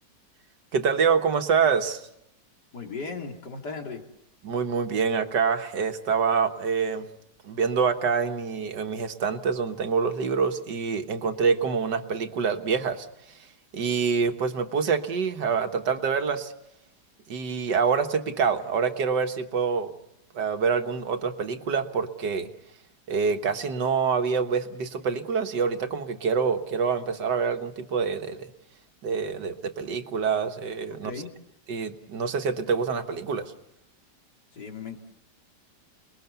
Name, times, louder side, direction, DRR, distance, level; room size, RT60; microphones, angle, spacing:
voice 1, 0.7-2.1 4.4-7.1 7.4-13.4 13.7-16.5 17.3-19.9 20.3-22.5 23.1-28.5 29.0-31.1 31.7-33.5, right 5 dB, 75° right, 7 dB, 2.0 m, -26 dB
voice 2, 2.7-4.0 30.9-31.3 34.5-35.0, left 4 dB, 70° left, 3 dB, 3.4 m, -36 dB
29.0 x 21.5 x 6.9 m, 0.80 s
omnidirectional pair, 1.9 m